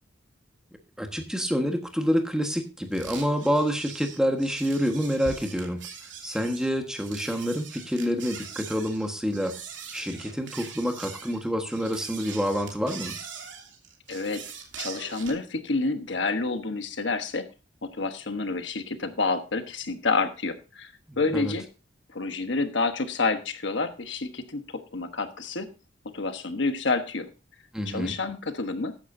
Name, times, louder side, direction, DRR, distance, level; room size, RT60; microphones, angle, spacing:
voice 1, 1.0-5.8 6.2-9.6 9.9-13.2 21.1-21.5 27.7-28.2, equal, 5° right, 4 dB, 1.4 m, -27 dB
sound 1, 2.9-15.4, right 6 dB, 75° right, 2.9 m, -42 dB
voice 2, 14.1-14.4 14.8-17.5 17.8-21.7 22.1-24.6 24.9-25.7 26.1-27.3 27.9-29.0, left 3 dB, 70° left, 8 dB, 1.2 m, -28 dB
14.5 x 10.5 x 2.7 m, 0.31 s
head